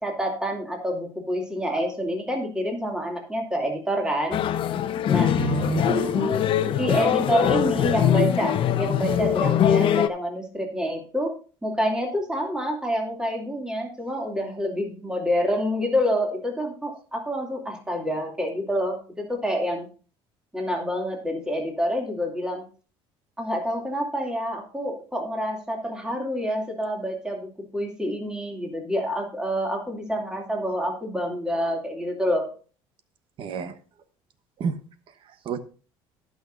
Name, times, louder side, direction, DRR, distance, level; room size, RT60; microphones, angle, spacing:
voice 1, 0.0-4.4 5.1-5.4 6.8-11.3 11.6-19.9 20.5-22.6 23.4-32.5, equal, 5° right, 2.5 m, -27 dB
sound 1, 4.3-10.1, left 10 dB, 55° left, 0.9 m, -22 dB
voice 2, 5.4-6.4 33.4-33.8 34.6-34.8 35.4-35.6, right 5 dB, 55° right, 1.1 m, -28 dB
18.0 x 6.3 x 2.6 m
supercardioid pair, 95°, 10 cm